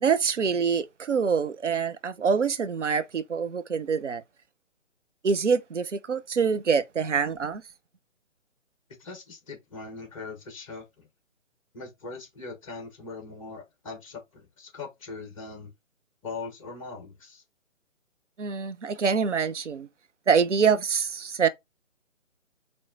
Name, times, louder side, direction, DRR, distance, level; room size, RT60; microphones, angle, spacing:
voice 1, 0.0-4.2 5.2-7.6 18.4-19.9 20.3-21.5, right 6 dB, 65° right, 0.6 m, -25 dB
voice 2, 9.0-11.1 11.7-15.7 16.2-17.4, left 4 dB, 25° left, 1.2 m, -41 dB
4.5 x 3.1 x 3.7 m
figure-of-eight pair, 140°, 39 cm